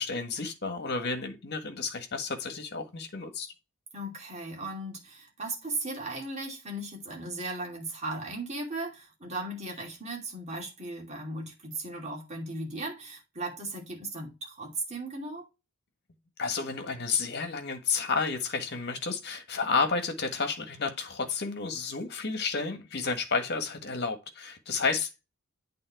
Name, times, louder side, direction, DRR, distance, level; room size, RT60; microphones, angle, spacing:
voice 1, 0.0-3.5 16.4-25.3, left 4 dB, 50° left, 1.5 m, -31 dB
voice 2, 3.9-15.5, right 2 dB, 30° right, 2.7 m, -37 dB
8.7 x 3.8 x 4.7 m
head